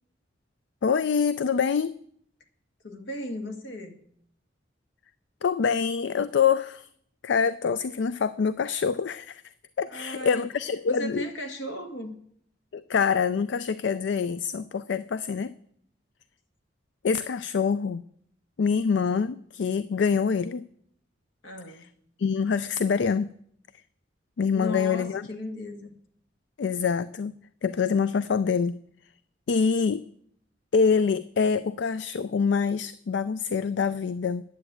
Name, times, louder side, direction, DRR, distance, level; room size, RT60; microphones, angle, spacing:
voice 1, 0.8-2.0 5.4-6.9 7.2-9.4 9.8-11.2 12.7-15.5 17.0-18.0 18.6-20.7 22.2-23.3 24.4-25.3 26.6-28.8 29.5-30.1 30.7-34.4, left 6 dB, 70° left, 0.4 m, -25 dB
voice 2, 2.8-4.0 9.9-10.5 10.9-12.2 21.4-21.9 24.5-25.9, left 1 dB, 85° left, 1.8 m, -36 dB
10.0 x 8.9 x 8.1 m
head